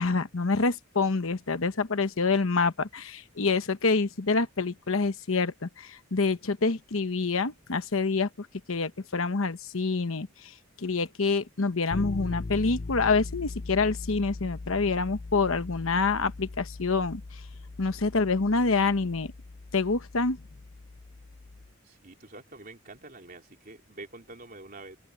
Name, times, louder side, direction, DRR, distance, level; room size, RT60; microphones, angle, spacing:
voice 1, 0.0-10.3 10.8-17.2 17.8-19.3 19.7-20.4, left 4 dB, 70° left, 1.0 m, -27 dB
sound 1, 11.9-21.7, left 3 dB, 35° left, 0.4 m, -40 dB
voice 2, 21.9-25.0, right 2 dB, 40° right, 3.7 m, -46 dB
head